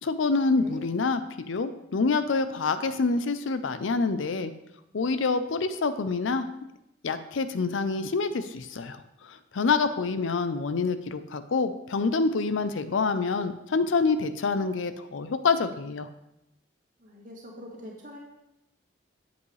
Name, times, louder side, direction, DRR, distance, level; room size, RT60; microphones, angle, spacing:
voice 1, 0.0-1.2 1.5-4.5 4.9-6.5 7.0-9.0 9.3-16.1, left 4 dB, 80° left, 11 dB, 0.5 m, -26 dB
voice 2, 17.0-18.2, equal, 40° right, -3 dB, 2.1 m, -44 dB
8.0 x 7.9 x 3.2 m, 0.86 s
head